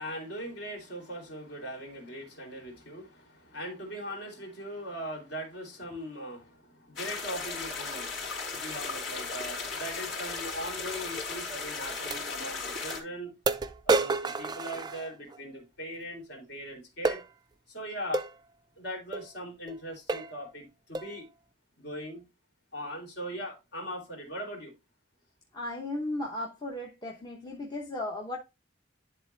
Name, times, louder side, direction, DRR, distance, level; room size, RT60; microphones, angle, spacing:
voice 1, 0.0-8.3 8.5-13.3 13.8-17.2 17.7-18.2 18.8-21.3 21.8-22.2 22.7-24.7, equal, 55° left, 2.9 m, -40 dB
sound 1, 7.0-13.0, left 4 dB, 70° left, 2.9 m, -36 dB
sound 2, 11.1-11.2 12.1-12.2 12.9-13.0 13.5-15.4 17.1-17.3 18.1-18.3 19.1-19.3 19.7-19.8 20.1-20.4 21.0-21.2, right 3 dB, 20° right, 0.4 m, -29 dB
voice 2, 25.5-28.4, left 1 dB, 20° left, 0.9 m, -35 dB
11.0 x 3.7 x 3.3 m
head